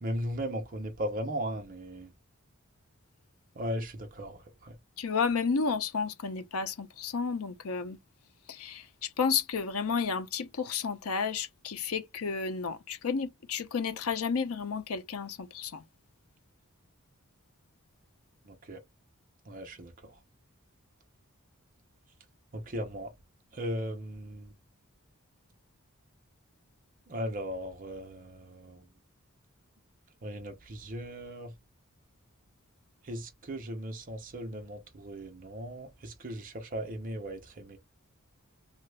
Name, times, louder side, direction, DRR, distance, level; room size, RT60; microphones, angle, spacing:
voice 1, 0.0-2.1 3.6-4.7 18.7-18.8 19.5-19.9 22.5-23.1 23.5-24.5 27.1-28.8 30.2-31.5 33.1-37.8, equal, 40° right, 0.6 m, -37 dB
voice 2, 5.0-8.0 8.6-8.8 9.2-15.8, left 5 dB, 85° left, 0.6 m, -31 dB
2.7 x 2.4 x 3.2 m
head